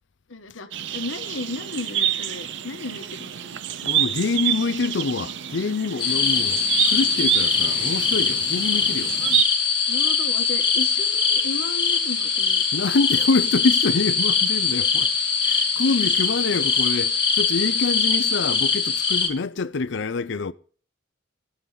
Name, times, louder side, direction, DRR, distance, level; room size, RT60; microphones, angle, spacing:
voice 1, 0.3-3.6 9.2-9.4 9.9-12.7, left 2 dB, 90° left, 1.4 m, -35 dB
sound 1, 0.7-9.4, right 10 dB, 65° right, 0.7 m, -27 dB
voice 2, 3.8-9.1 12.7-15.1 15.4-20.5, left 4 dB, 65° left, 0.6 m, -26 dB
sound 2, 6.0-19.3, left 5 dB, 25° left, 1.8 m, -22 dB
20.0 x 7.3 x 3.9 m
head